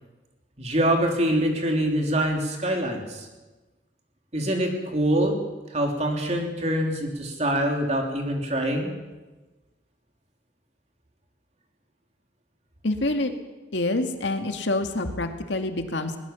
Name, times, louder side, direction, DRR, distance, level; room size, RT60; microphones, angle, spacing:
voice 1, 0.6-3.3 4.3-5.4 5.7-8.9, right 1 dB, 35° right, 2 dB, 3.5 m, -24 dB
voice 2, 12.8-13.3 13.7-16.2, left 2 dB, 75° left, 6 dB, 2.1 m, -26 dB
20.5 x 20.0 x 7.1 m, 1.2 s
head